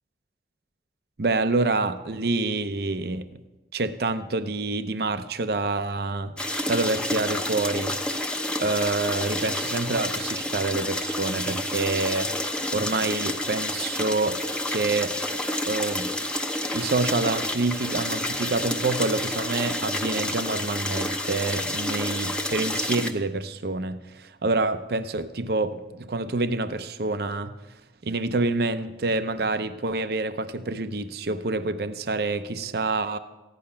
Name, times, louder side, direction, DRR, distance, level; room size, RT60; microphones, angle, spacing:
voice 1, 1.2-3.3 3.7-6.4 6.7-12.3 12.7-14.4 14.7-15.1 15.7-16.1 16.7-27.5 28.0-33.2, right 3 dB, 60° right, 10 dB, 0.7 m, -27 dB
sound 1, 6.4-23.1, left 1 dB, 5° left, 0.8 m, -29 dB
15.0 x 10.5 x 5.6 m, 1.1 s
head